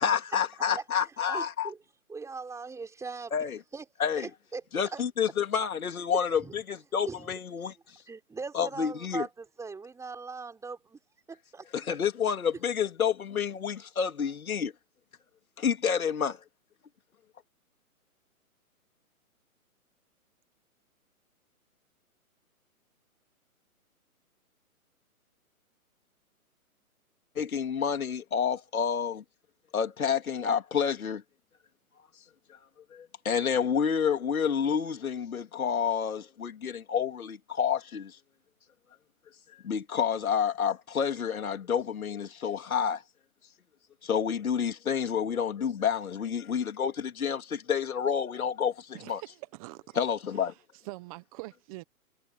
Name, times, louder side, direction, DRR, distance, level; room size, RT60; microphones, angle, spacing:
voice 1, 0.0-1.7 3.3-3.6 4.0-4.3 4.7-7.7 8.5-9.3 11.7-14.7 15.6-16.4 27.4-29.2 29.7-31.2 32.9-38.2 39.6-43.0 44.0-49.2 50.0-50.5, left 7 dB, 70° left, 3.5 m, -29 dB
voice 2, 1.3-1.8 2.1-3.3 3.7-3.8 4.2-4.6 4.9-5.0 6.4-6.5 7.1-7.3 7.6-7.7 8.1-11.0 11.3-11.7, right 4 dB, 5° right, 4.0 m, -40 dB
voice 3, 48.9-50.0 50.5-50.6 50.8-51.8, right 22 dB, 25° right, 1.3 m, -44 dB
hypercardioid pair, 145°, 44 cm